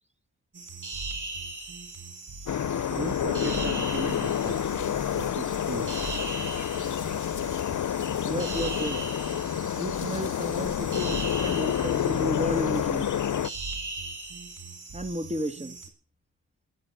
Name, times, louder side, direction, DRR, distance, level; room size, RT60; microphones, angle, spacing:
sound 1, 0.5-15.9, right 3 dB, 60° right, 4.5 m, -39 dB
sound 2, 2.5-13.5, left 10 dB, 60° left, 0.7 m, -28 dB
voice 1, 2.9-6.0, right 3 dB, 35° right, 2.1 m, -37 dB
voice 2, 8.3-9.0 9.8-13.1 14.9-15.8, equal, 20° right, 2.9 m, -32 dB
13.0 x 11.0 x 9.2 m
cardioid pair, 50°, 34 cm